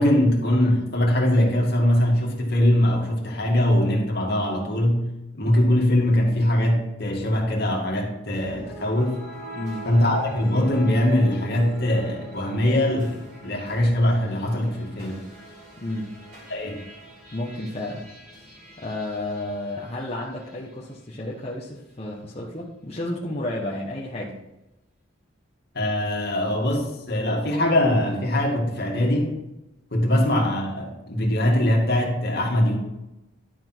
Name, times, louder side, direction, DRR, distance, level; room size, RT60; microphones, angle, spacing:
voice 1, 0.0-5.1 5.4-9.2 9.8-13.2 13.4-15.2 16.5-16.8 25.7-29.4 29.9-32.8, left 1 dB, 55° left, -1 dB, 2.3 m, -22 dB
sound 1, 8.3-20.6, equal, 55° right, 3.8 m, -43 dB
voice 2, 9.5-9.8 15.8-16.1 17.3-18.1 18.8-24.4, left 1 dB, 30° left, -4 dB, 1.2 m, -32 dB
11.5 x 6.0 x 4.6 m, 0.94 s
head